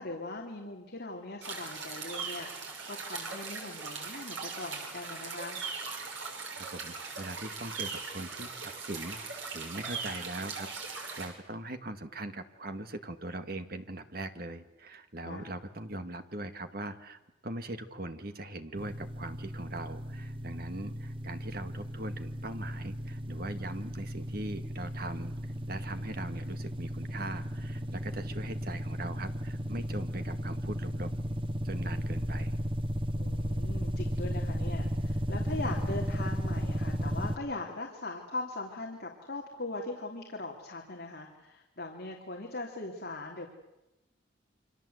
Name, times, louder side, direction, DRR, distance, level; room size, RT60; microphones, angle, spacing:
voice 1, 0.0-5.6 15.2-15.5 33.2-43.5, left 2 dB, 55° left, 0 dB, 3.0 m, -40 dB
sound 1, 1.4-11.3, right 4 dB, 80° right, 6.5 m, -40 dB
voice 2, 6.6-25.4 25.7-31.1 31.6-32.6, right 1 dB, 50° right, 8 dB, 1.8 m, -41 dB
sound 2, 18.8-37.4, equal, 25° right, 1.0 m, -35 dB
29.0 x 25.0 x 8.0 m, 0.96 s
head